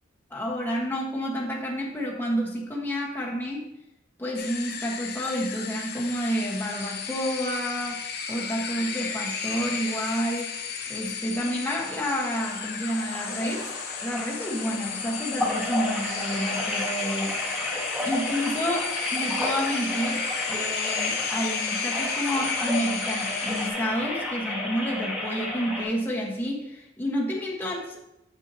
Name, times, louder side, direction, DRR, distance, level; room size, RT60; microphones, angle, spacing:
voice 1, 0.3-3.6 4.2-8.0 8.3-10.5 10.9-13.7 14.0-17.4 18.0-28.0, equal, 10° left, -3 dB, 1.1 m, -29 dB
sound 1, 4.4-23.7, left 6 dB, 55° left, 0.8 m, -34 dB
sound 2, 11.4-25.8, left 2 dB, 5° right, 1.4 m, -32 dB
7.3 x 7.1 x 2.7 m, 0.85 s
head